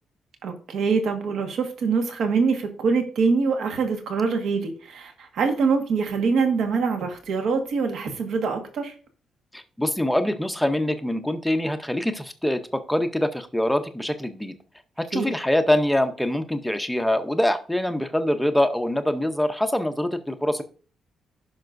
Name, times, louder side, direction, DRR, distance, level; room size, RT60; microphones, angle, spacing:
voice 1, 0.4-8.9 15.1-15.3, right 5 dB, 65° right, 5 dB, 1.5 m, -24 dB
voice 2, 9.5-14.5 15.0-20.6, left 1 dB, 5° left, 8 dB, 0.6 m, -24 dB
15.0 x 5.8 x 2.6 m, 0.40 s
cardioid pair, 160°, 0 cm